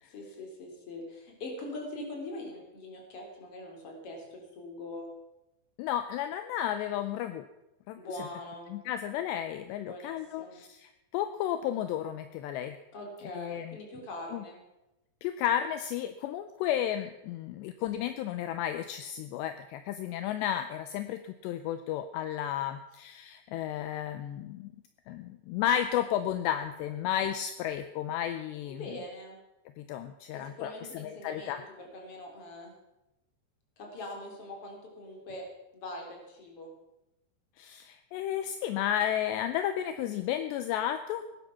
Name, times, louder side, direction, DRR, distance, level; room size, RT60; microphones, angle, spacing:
voice 1, 0.1-5.1 8.0-8.7 9.8-10.6 12.9-14.6 28.7-29.4 30.3-31.6 31.9-32.7 33.8-35.5 35.7-36.7, left 1 dB, 35° left, 0 dB, 3.8 m, -42 dB
voice 2, 5.8-7.5 7.9-8.3 8.7-12.8 13.3-13.8 14.3-14.4 15.2-24.7 25.1-28.9 29.8-31.6 37.6-41.3, left 10 dB, 80° left, 9 dB, 2.7 m, -33 dB
18.5 x 10.5 x 5.8 m, 0.94 s
omnidirectional pair, 5.5 m